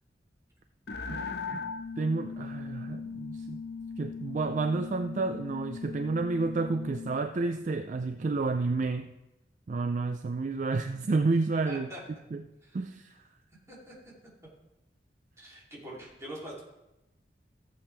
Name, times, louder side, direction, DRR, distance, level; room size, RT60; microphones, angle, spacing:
sound 1, 0.9-7.2, left 5 dB, 65° left, 0.7 m, -39 dB
voice 1, 2.0-3.6 4.0-9.1 9.7-11.9 12.3-12.4 12.7-13.1, right 3 dB, 45° right, 8 dB, 0.4 m, -30 dB
voice 2, 11.6-12.0 12.6-12.8 13.7-13.9 15.4-16.6, right 1 dB, 15° right, -5 dB, 2.9 m, -43 dB
15.0 x 7.7 x 3.3 m, 0.96 s
head